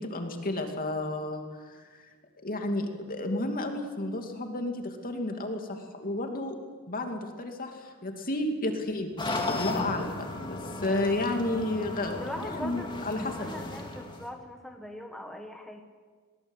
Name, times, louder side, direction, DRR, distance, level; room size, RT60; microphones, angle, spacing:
voice 1, 0.0-2.1 2.4-6.6 6.9-9.2 9.4-10.2 10.5-13.5, left 2 dB, 40° left, 4 dB, 2.7 m, -32 dB
sound 1, 9.2-14.3, left 2 dB, 20° left, 2.7 m, -35 dB
voice 2, 9.4-9.9 10.8-11.3 12.2-15.8, left 1 dB, ahead, 3 dB, 1.5 m, -41 dB
22.5 x 19.0 x 8.2 m, 1.5 s
head